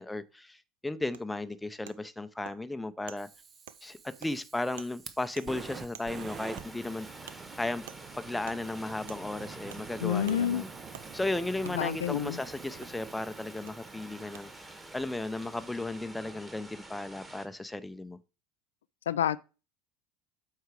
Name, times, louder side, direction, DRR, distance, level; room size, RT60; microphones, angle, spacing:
voice 1, 0.0-3.3 3.8-7.8 8.2-10.7 11.1-18.2, left 2 dB, 10° left, 0.7 m, -35 dB
Wood, 1.1-1.2 1.8-2.0 2.4-2.6 3.1-3.2 3.7-3.8 4.2-4.3 4.8-4.9 5.3-5.5 5.9-6.1 6.6-6.7 7.3-7.4 7.9-8.0 8.4-8.6 9.1-9.2 9.7-9.8 10.3-10.4 10.9-11.1 11.6-11.8 12.8-12.9 13.7-13.8 14.3-14.4, right 11 dB, 75° right, 0.6 m, -47 dB
Fire, 3.2-16.3, right 6 dB, 35° right, 1.0 m, -48 dB
sound 1, 6.3-17.5, right 2 dB, 10° right, 1.9 m, -49 dB
voice 2, 10.0-10.6 11.7-12.4 19.1-19.4, left 9 dB, 85° left, 0.3 m, -28 dB
8.1 x 4.6 x 4.9 m
hypercardioid pair, 80°, 0 cm